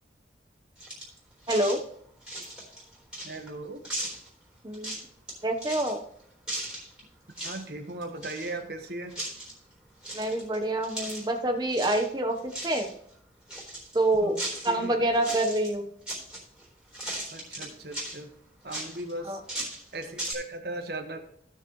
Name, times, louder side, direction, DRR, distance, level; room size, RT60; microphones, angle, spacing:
sound 1, 0.8-1.2 1.4-1.8 2.2-3.5 3.8-4.3 4.7-5.3 5.6-5.9 6.5-7.0 7.3-7.6 7.9-8.8 9.1-9.5 10.0-11.4 11.7-12.1 12.4-12.9 13.5-14.8 15.1-15.7 16.1-16.6 16.9-18.2 18.7-20.3, right 1 dB, 5° right, 3.9 m, -37 dB
voice 1, 1.5-1.8 4.6-4.9 5.4-6.0 10.1-12.9 13.9-14.4 14.6-15.9 19.2-19.4, right 1 dB, 25° right, 5 dB, 1.0 m, -26 dB
voice 2, 3.2-3.8 7.4-9.1 14.2-14.4 14.7-15.0 17.3-18.3 18.6-19.4 19.9-21.2, right 2 dB, 65° right, 5 dB, 1.4 m, -37 dB
15.5 x 6.7 x 3.1 m, 0.70 s
head